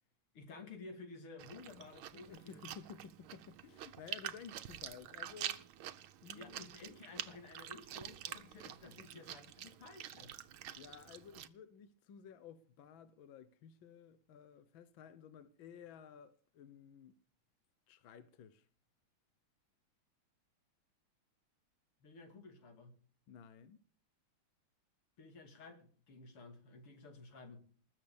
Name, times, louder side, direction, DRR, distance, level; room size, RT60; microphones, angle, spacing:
voice 1, 0.3-2.6 6.3-10.4 22.0-23.0 25.2-27.6, left 3 dB, 85° left, 3.4 m, -53 dB
Chewing mastication, 1.4-11.5, right 11 dB, 75° right, 1.7 m, -47 dB
voice 2, 2.1-5.7 6.2-6.7 9.0-9.2 10.8-17.2 17.9-18.7 23.3-23.8, left 7 dB, 70° left, 1.6 m, -54 dB
20.0 x 7.4 x 6.9 m
omnidirectional pair, 2.4 m